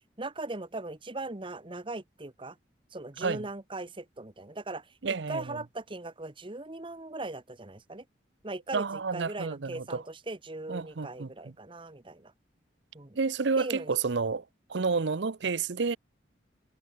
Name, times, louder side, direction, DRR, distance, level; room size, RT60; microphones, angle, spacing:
voice 1, 0.2-2.5 2.9-8.0 8.4-12.3 12.9-13.2 13.6-13.9, right 2 dB, 25° right, 1.2 m, -39 dB
voice 2, 5.0-5.6 8.7-10.0 10.7-11.5 13.2-14.4 14.7-16.0, right 4 dB, 65° right, 0.7 m, -30 dB
head